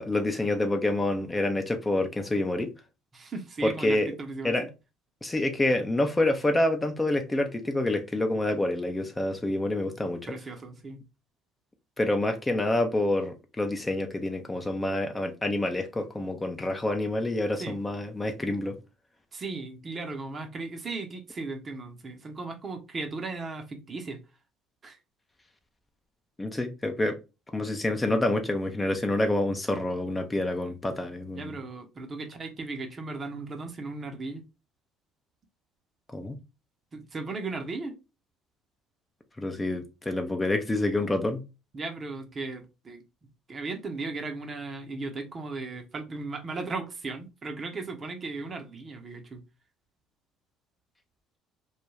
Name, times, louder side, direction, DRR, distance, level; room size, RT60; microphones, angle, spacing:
voice 1, 0.0-2.7 3.6-4.1 4.4-4.6 5.2-10.2 12.0-18.8 26.4-27.2 27.5-31.6 36.1-36.4 39.4-41.4, left 1 dB, 15° left, 0.5 m, -27 dB
voice 2, 3.1-4.7 9.8-9.9 10.3-11.0 17.6-17.8 19.3-24.2 24.8-25.0 31.3-34.4 36.9-37.9 39.7-39.8 41.7-43.0 43.5-49.4, right 3 dB, 35° right, 0.7 m, -36 dB
2.3 x 2.2 x 3.1 m
hypercardioid pair, 60°, 0 cm